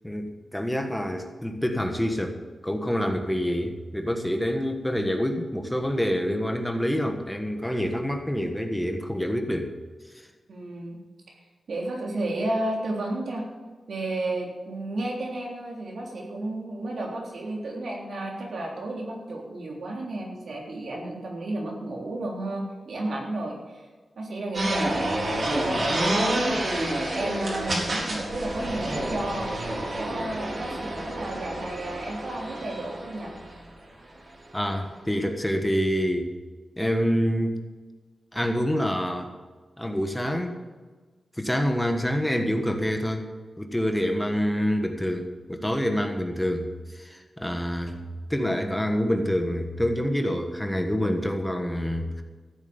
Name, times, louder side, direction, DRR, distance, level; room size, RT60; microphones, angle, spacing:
voice 1, 0.0-9.7 34.5-36.3 36.8-37.6 38.3-39.3 39.8-40.6 41.4-43.3 43.6-48.0 48.3-52.2, equal, 5° left, 4 dB, 1.5 m, -27 dB
voice 2, 10.5-11.0 11.7-13.4 13.9-23.8 24.2-26.4 27.1-29.5 29.9-33.3, right 1 dB, 75° right, -1 dB, 3.5 m, -32 dB
sound 1, 24.5-33.6, right 1 dB, 55° right, 4.0 m, -29 dB
14.0 x 8.3 x 7.1 m, 1.4 s
wide cardioid pair, 80°, 0 cm